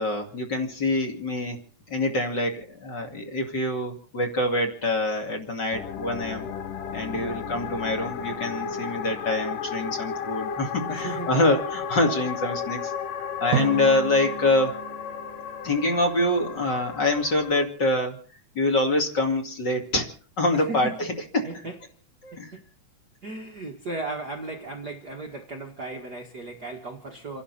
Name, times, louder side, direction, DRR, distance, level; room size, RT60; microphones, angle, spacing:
voice 1, 0.0-1.6 1.9-6.5 6.9-12.9 13.4-14.7 15.6-18.2 18.5-20.1 20.4-21.5 22.2-22.5, left 2 dB, 35° left, 2.9 m, -25 dB
sound 1, 5.7-17.7, left 7 dB, 85° left, 2.9 m, -34 dB
voice 2, 7.1-7.6 10.9-11.5 13.5-13.7 20.5-21.0 21.4-21.8 22.3-22.6 23.2-27.4, right 2 dB, 40° right, 1.7 m, -36 dB
Drum, 13.5-16.4, right 11 dB, 70° right, 2.1 m, -33 dB
29.5 x 11.5 x 4.2 m
omnidirectional pair, 3.7 m